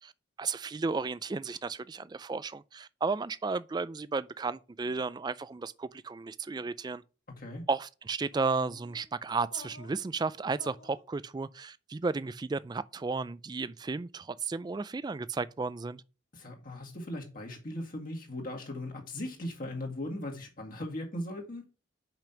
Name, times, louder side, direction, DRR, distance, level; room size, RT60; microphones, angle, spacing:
voice 1, 0.4-7.0 7.7-16.0, right 4 dB, 20° right, 0.3 m, -33 dB
sound 1, 8.3-9.0 9.5-10.0 10.6-11.0, left 3 dB, 80° left, 1.3 m, -50 dB
voice 2, 16.3-21.6, left 1 dB, 45° left, 2.0 m, -38 dB
5.9 x 5.2 x 5.8 m
head